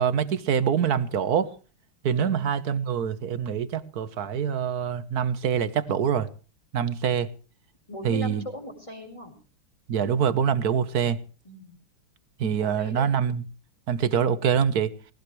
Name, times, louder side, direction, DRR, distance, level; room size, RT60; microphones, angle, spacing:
voice 1, 0.0-1.5 2.0-6.3 6.7-7.3 8.0-8.4 9.9-11.2 12.4-13.4 13.9-14.9, right 7 dB, 55° right, 1.3 m, -25 dB
voice 2, 7.9-9.3 11.4-11.8 12.6-13.0, left 1 dB, 15° left, 4.7 m, -39 dB
19.0 x 18.5 x 3.2 m
omnidirectional pair, 2.4 m